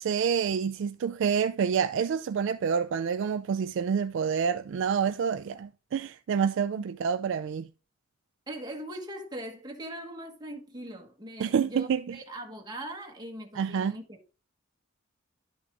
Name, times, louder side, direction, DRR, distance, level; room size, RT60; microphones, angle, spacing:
voice 1, 0.0-7.7 11.4-12.2 13.6-14.0, right 7 dB, 60° right, 0.3 m, -28 dB
voice 2, 8.5-14.3, right 1 dB, 20° right, 1.4 m, -41 dB
11.5 x 6.0 x 2.5 m
head